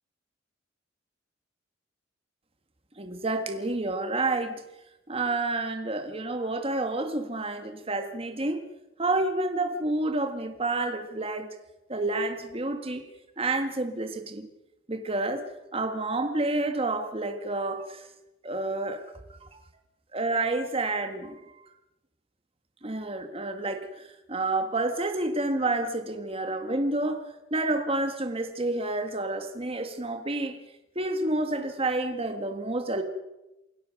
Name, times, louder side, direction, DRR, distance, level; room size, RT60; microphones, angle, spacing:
voice 1, 3.0-4.6 5.1-8.6 9.0-11.5 11.9-13.0 13.4-14.5 14.9-18.0 18.4-19.1 19.4-19.5 20.1-21.4 22.8-23.9 24.3-27.2 27.5-30.6 31.0-33.0, right 2 dB, 30° right, 7 dB, 1.7 m, -29 dB
28.5 x 17.0 x 6.5 m, 0.96 s
head